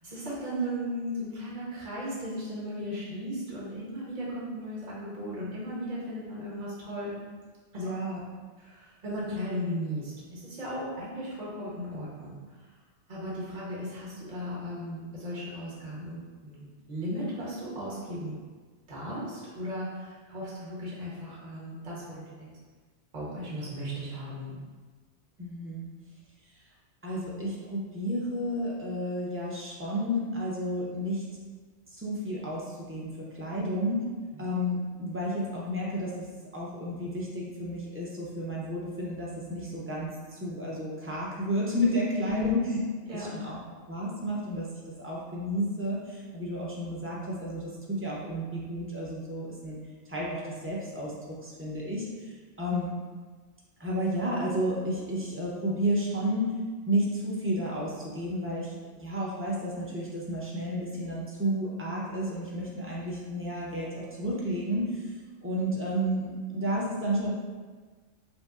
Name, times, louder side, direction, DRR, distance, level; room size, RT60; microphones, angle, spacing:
voice 1, 0.0-7.2 7.7-7.9 8.6-12.3 13.1-18.4 18.9-22.5 23.1-24.6 33.6-33.7 34.3-34.4 42.2-42.6 43.1-43.3, equal, 40° right, -7 dB, 1.0 m, -36 dB
voice 2, 7.8-8.2 25.4-25.8 27.0-31.2 32.0-34.0 34.4-36.3 36.5-42.6 43.1-43.6 43.9-44.7 45.0-49.8 50.1-52.3 52.6-52.9 53.8-56.5 56.9-65.1 65.4-67.3, equal, 20° right, -6 dB, 0.4 m, -31 dB
5.3 x 2.0 x 2.4 m, 1.4 s
omnidirectional pair, 1.2 m